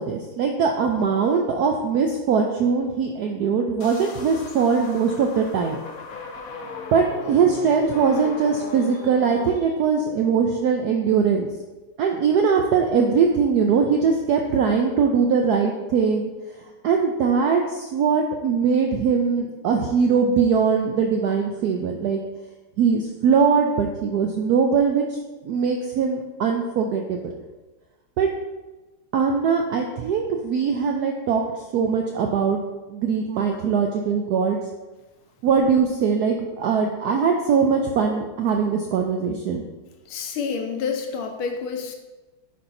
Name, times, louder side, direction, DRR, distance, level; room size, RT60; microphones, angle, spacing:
voice 1, 0.0-5.8 6.9-11.5 12.0-16.3 16.8-22.2 22.8-27.3 28.2-28.3 29.1-31.4 31.7-32.6 32.9-34.6 35.4-39.6, right 6 dB, 80° right, 2 dB, 0.8 m, -21 dB
sound 1, 3.8-9.5, left 4 dB, 60° left, 1.0 m, -38 dB
voice 2, 40.1-42.0, left 5 dB, 80° left, 4 dB, 1.6 m, -28 dB
9.9 x 4.3 x 2.7 m, 1.1 s
omnidirectional pair, 2.2 m